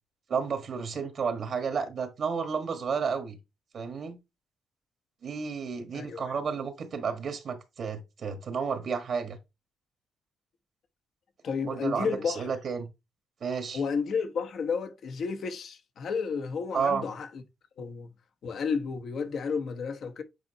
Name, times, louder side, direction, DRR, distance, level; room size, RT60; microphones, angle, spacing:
voice 1, 0.3-3.4 3.7-4.2 5.2-9.4 11.7-12.9 13.4-13.8 16.7-17.1, right 6 dB, 55° right, 1.4 m, -31 dB
voice 2, 5.9-6.3 11.4-12.5 13.7-17.4 17.8-18.1 18.4-20.2, left 5 dB, 60° left, 1.1 m, -32 dB
8.3 x 4.4 x 2.8 m
cardioid pair, 90°, 0 cm